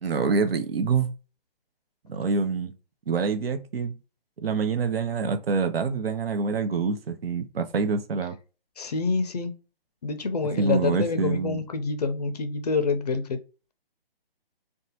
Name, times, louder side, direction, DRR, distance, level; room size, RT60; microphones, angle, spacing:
voice 1, 0.0-1.1 2.1-2.7 3.1-3.9 4.4-8.4 10.6-11.6, right 4 dB, 80° right, 0.6 m, -26 dB
voice 2, 8.8-9.5 10.0-13.4, left 4 dB, 45° left, 0.5 m, -27 dB
2.7 x 2.2 x 2.8 m
hypercardioid pair, 155°, 29 cm